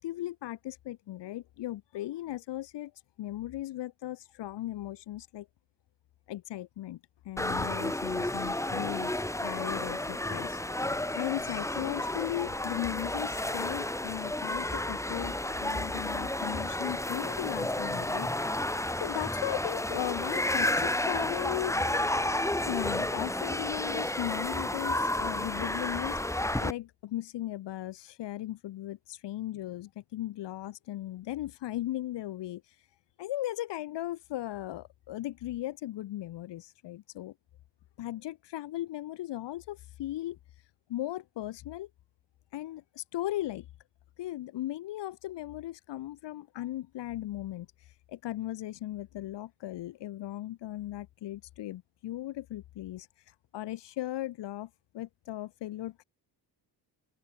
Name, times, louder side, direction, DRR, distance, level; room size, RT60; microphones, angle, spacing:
voice 1, 0.0-2.9 3.2-5.5 6.3-7.0 7.2-9.1 9.4-10.6 11.1-18.3 19.0-21.7 22.6-26.2 26.6-32.6 33.2-37.3 38.0-40.4 40.9-41.9 42.5-43.7 44.2-47.7 48.1-53.1 53.5-56.0, left 14 dB, 85° left, 4.7 m, -37 dB
sound 1, 7.4-26.7, left 1 dB, 5° left, 2.4 m, -31 dB
open air
cardioid pair, 100°, 41 cm